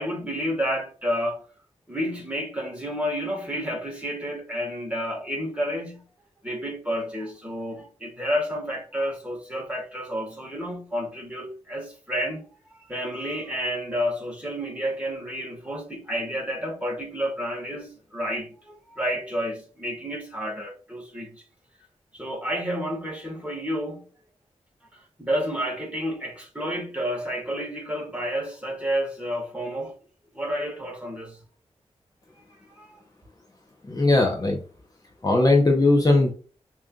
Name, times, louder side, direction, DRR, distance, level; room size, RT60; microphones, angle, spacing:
voice 1, 0.0-1.4 1.9-6.0 6.4-12.5 12.7-21.4 22.1-24.1 24.9-29.9 30.3-31.4 32.7-33.0, equal, 10° right, 2.0 m, -30 dB
voice 2, 33.9-34.6 35.2-36.3, left 2 dB, 30° left, 0.9 m, -19 dB
5.1 x 3.0 x 2.5 m
wide cardioid pair, 75°, 12 cm